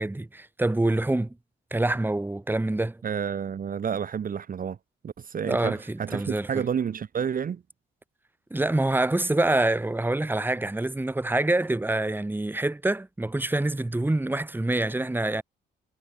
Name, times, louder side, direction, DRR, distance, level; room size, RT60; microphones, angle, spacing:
voice 1, 0.0-1.4 1.7-3.0 5.4-6.6 8.5-15.4, right 2 dB, 10° right, 1.7 m, -26 dB
voice 2, 3.0-4.8 5.0-7.6, right 7 dB, 45° right, 1.2 m, -30 dB
cardioid pair, 90°, 20 cm